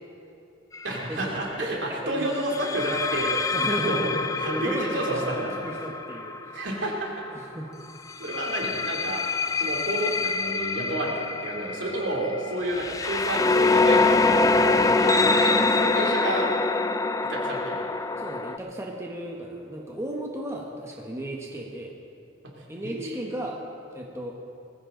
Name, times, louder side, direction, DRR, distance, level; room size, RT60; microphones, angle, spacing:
sound 1, 0.7-1.0 2.5-7.3 8.1-18.6, left 3 dB, 20° left, 0.4 m, -25 dB
voice 1, 0.8-3.4 3.7-5.7 6.5-7.3 8.2-9.2 9.5-16.5 17.3-17.8 22.6-23.3, right 1 dB, 70° right, -2 dB, 3.1 m, -30 dB
voice 2, 1.6-2.3 2.5-2.8 3.5-4.1 4.4-6.6 7.3-7.8 18.2-21.9 22.7-23.6 23.9-24.4, right 1 dB, 15° right, -1 dB, 1.3 m, -34 dB
20.0 x 15.5 x 3.9 m, 2.7 s
head